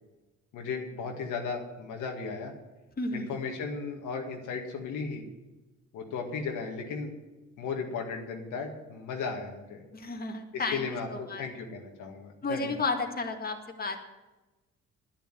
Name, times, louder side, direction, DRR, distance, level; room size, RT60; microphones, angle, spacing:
voice 1, 0.5-2.5 3.1-5.2 5.9-7.1 7.6-9.8 10.5-12.8, left 5 dB, 90° left, 2 dB, 2.1 m, -35 dB
voice 2, 3.0-3.3 9.9-11.4 12.4-14.0, left 3 dB, 30° left, 3 dB, 2.0 m, -32 dB
10.5 x 10.0 x 9.2 m, 1.1 s
cardioid pair, 90°, 30 cm